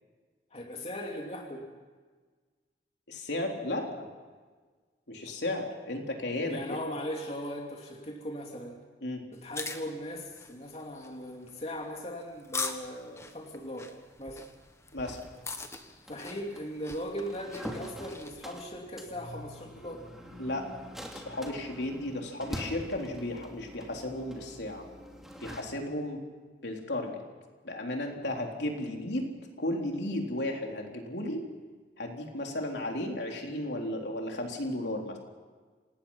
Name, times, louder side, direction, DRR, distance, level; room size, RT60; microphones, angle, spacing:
voice 1, 0.5-1.7 6.4-8.8 9.3-13.9 14.2-14.4 16.1-20.0, equal, 35° left, 0 dB, 2.9 m, -39 dB
voice 2, 3.1-4.1 5.1-6.8 9.0-9.2 14.9-15.2 20.4-20.7 21.1-24.8 25.4-26.2 26.6-27.2 27.6-31.5 32.0-35.2, left 1 dB, 75° left, 1 dB, 3.8 m, -34 dB
sound 1, 9.3-18.4, left 4 dB, 15° left, 1.5 m, -42 dB
sound 2, 15.0-25.6, equal, ahead, 2.7 m, -45 dB
27.5 x 19.5 x 5.7 m, 1.4 s
head